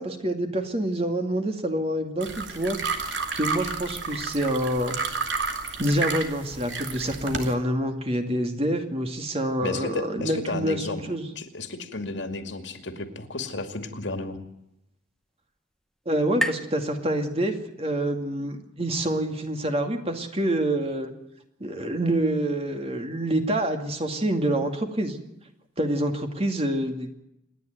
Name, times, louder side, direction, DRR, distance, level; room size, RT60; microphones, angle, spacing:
voice 1, 0.0-2.8 3.4-5.0 5.8-11.3 16.1-21.1 21.6-25.2 25.8-27.1, right 1 dB, 30° right, 5 dB, 2.3 m, -27 dB
sound 1, 2.2-7.5, right 4 dB, 70° right, 2.6 m, -31 dB
voice 2, 9.6-11.0 11.4-14.4, left 2 dB, 70° left, 7 dB, 2.3 m, -33 dB
sound 2, 14.1-17.8, equal, 5° left, 0.9 m, -36 dB
27.5 x 10.5 x 9.4 m, 0.83 s
head